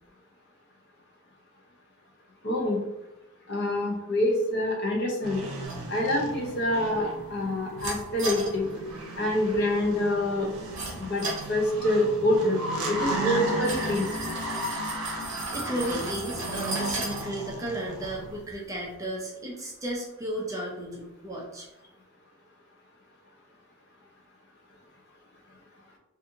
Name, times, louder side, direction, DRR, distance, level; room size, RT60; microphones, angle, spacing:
voice 1, 2.4-2.8 3.5-5.4 5.9-8.7 9.2-10.5 11.0-12.6 12.9-14.1, left 1 dB, 50° left, -1 dB, 0.7 m, -26 dB
sound 1, 5.2-18.4, right 1 dB, 85° right, 0.6 m, -35 dB
sound 2, 5.6-18.9, right 2 dB, 50° right, 0.8 m, -39 dB
voice 2, 15.5-21.7, right 1 dB, 15° right, -3 dB, 0.4 m, -34 dB
2.7 x 2.5 x 2.5 m, 0.95 s
head